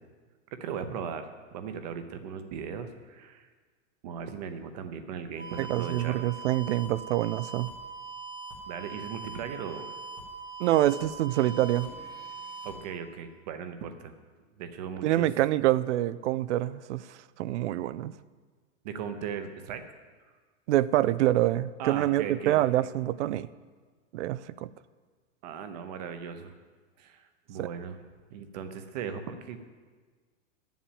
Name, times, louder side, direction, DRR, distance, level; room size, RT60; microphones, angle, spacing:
voice 1, 0.6-3.5 4.0-6.2 8.7-9.9 12.6-14.1 14.6-15.3 18.8-19.8 21.8-22.6 25.4-26.5 27.0-28.0 28.3-29.7, right 7 dB, 30° right, 0.8 m, -38 dB
sound 1, 5.4-12.8, right 4 dB, 5° right, 0.4 m, -42 dB
voice 2, 5.6-7.7 10.6-11.9 15.0-17.1 17.4-18.1 20.7-23.5 24.1-24.7 27.6-27.7, right 14 dB, 65° right, 0.5 m, -26 dB
10.0 x 7.3 x 8.9 m
supercardioid pair, 180°, 39 cm